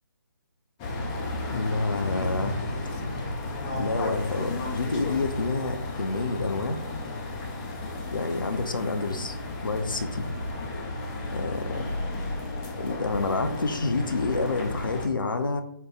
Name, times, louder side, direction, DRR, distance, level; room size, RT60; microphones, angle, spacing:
sound 1, 0.8-15.1, left 2 dB, 15° left, 0.4 m, -33 dB
voice 1, 1.5-2.6 3.7-6.8 8.1-9.4 9.6-10.3 11.3-11.8 12.8-15.6, left 3 dB, 70° left, 7 dB, 0.6 m, -28 dB
4.5 x 2.2 x 3.8 m, 0.70 s
figure-of-eight pair, 145°, 11 cm